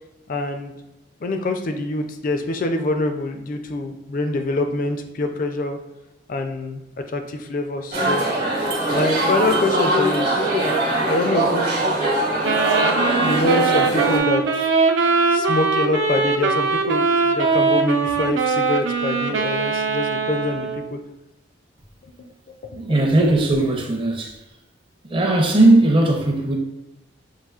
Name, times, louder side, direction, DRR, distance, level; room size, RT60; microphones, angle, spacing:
voice 1, 0.3-0.7 1.2-5.8 6.3-6.8 7.1-8.3 8.9-10.8 11.1-11.9 13.2-14.4 15.3-21.0 22.7-22.8, left 2 dB, 45° left, 6 dB, 0.4 m, -25 dB
sound 1, 7.9-14.2, right 1 dB, 55° right, 1.0 m, -21 dB
Wind instrument woodwind instrument, 12.4-20.9, right 4 dB, 75° right, 0.4 m, -21 dB
voice 2, 22.8-24.3 25.1-26.6, right 2 dB, 25° right, 1 dB, 0.5 m, -17 dB
5.6 x 2.7 x 2.3 m, 0.95 s
head